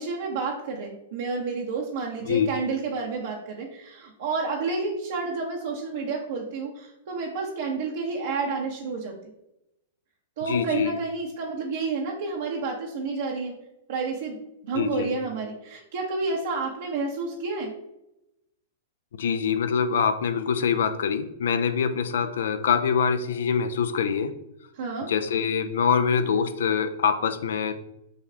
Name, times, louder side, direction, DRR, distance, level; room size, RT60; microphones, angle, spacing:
voice 1, 0.0-9.1 10.4-13.5 13.9-17.7 24.7-25.1, right 4 dB, 65° right, -2 dB, 0.9 m, -30 dB
voice 2, 10.5-10.9 14.7-15.1 19.2-24.3 25.0-27.8, left 6 dB, 75° left, 9 dB, 0.5 m, -24 dB
6.4 x 2.4 x 3.3 m, 0.88 s
hypercardioid pair, 110°, 0 cm